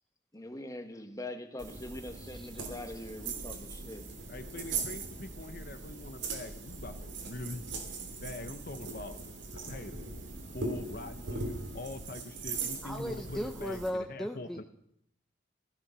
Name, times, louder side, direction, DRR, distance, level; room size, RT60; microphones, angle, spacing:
voice 1, 0.3-4.0, left 1 dB, 15° left, 6 dB, 1.4 m, -43 dB
sound 1, 1.6-13.9, right 3 dB, 75° right, 3.2 m, -40 dB
voice 2, 4.3-7.6 8.2-9.2 9.5-10.0 10.5-14.6, left 2 dB, 50° left, 9 dB, 1.0 m, -43 dB
voice 3, 12.8-14.6, equal, ahead, 4 dB, 0.7 m, -36 dB
15.5 x 13.5 x 6.2 m, 0.72 s
head